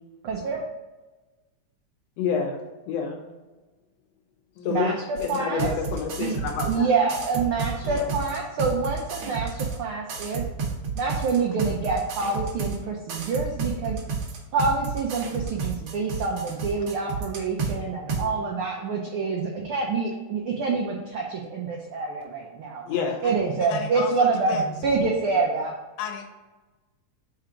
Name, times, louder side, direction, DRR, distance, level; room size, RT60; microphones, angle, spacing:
voice 1, 0.2-0.6 4.7-5.7 6.2-6.4 6.7-10.4 11.0-14.0 14.5-22.8 23.2-25.7, right 4 dB, 80° right, 0 dB, 1.2 m, -26 dB
voice 2, 2.2-2.6 2.9-3.2 4.6-4.9 5.2-6.9 22.9-23.2, left 6 dB, 70° left, 2 dB, 2.0 m, -28 dB
voice 3, 4.6-5.0 7.8-8.3 8.6-8.9 18.2-18.6 22.8-24.8 26.0-26.3, left 6 dB, 85° left, 4 dB, 2.2 m, -36 dB
sound 1, 5.2-6.8 7.1-9.8 10.1-12.8 13.1-17.7 18.1-18.2, right 5 dB, 60° right, 1.6 m, -30 dB
4.9 x 4.4 x 4.9 m, 1.2 s
omnidirectional pair, 3.3 m